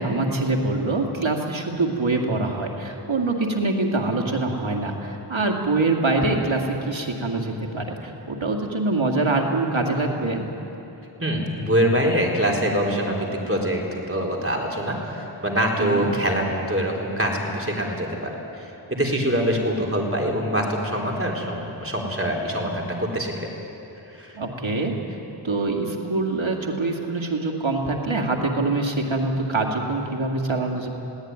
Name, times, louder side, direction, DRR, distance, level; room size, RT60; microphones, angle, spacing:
voice 1, 0.0-10.4 15.8-16.1 24.3-24.9 25.4-30.9, right 2 dB, 75° right, 1 dB, 2.5 m, -24 dB
voice 2, 11.2-23.5 24.1-24.4, equal, 25° right, -1 dB, 4.0 m, -24 dB
21.0 x 17.0 x 9.6 m, 3.0 s
wide cardioid pair, 50°, 47 cm